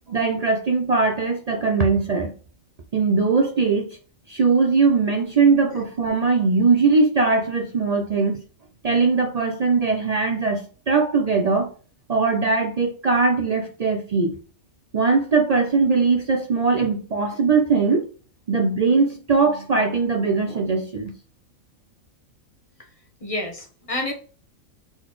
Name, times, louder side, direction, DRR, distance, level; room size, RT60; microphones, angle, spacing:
voice 1, 0.1-2.3 2.9-4.0 4.3-8.4 8.8-11.7 12.1-14.3 14.9-18.1 18.5-21.1, right 4 dB, 90° right, 0.3 m, -20 dB
voice 2, 23.2-24.1, left 1 dB, 30° left, 0.9 m, -29 dB
3.9 x 3.9 x 3.1 m
omnidirectional pair, 1.4 m